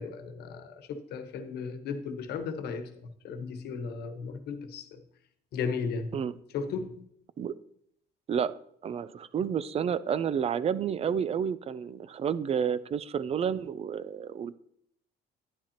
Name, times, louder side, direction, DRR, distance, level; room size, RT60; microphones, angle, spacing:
voice 1, 0.0-5.0 5.5-6.2 6.5-7.1, left 5 dB, 75° left, 8 dB, 1.2 m, -35 dB
voice 2, 8.8-14.6, right 7 dB, 35° right, 17 dB, 0.5 m, -30 dB
11.0 x 10.0 x 2.9 m, 0.69 s
cardioid pair, 110°, 17 cm